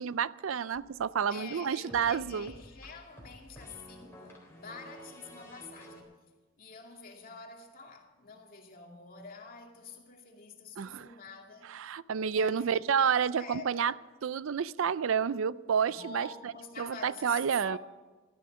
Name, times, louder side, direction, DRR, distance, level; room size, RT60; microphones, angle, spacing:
voice 1, 0.0-2.5 10.8-11.1 11.6-13.9 14.2-16.5 16.8-17.8, right 7 dB, 70° right, 0.4 m, -30 dB
sound 1, 0.7-6.0, equal, 10° left, 3.9 m, -52 dB
voice 2, 1.3-6.2 6.6-11.7 12.2-12.7 13.0-13.1 13.4-13.9 15.9-17.8, left 4 dB, 45° left, 2.4 m, -47 dB
17.0 x 13.0 x 6.2 m
head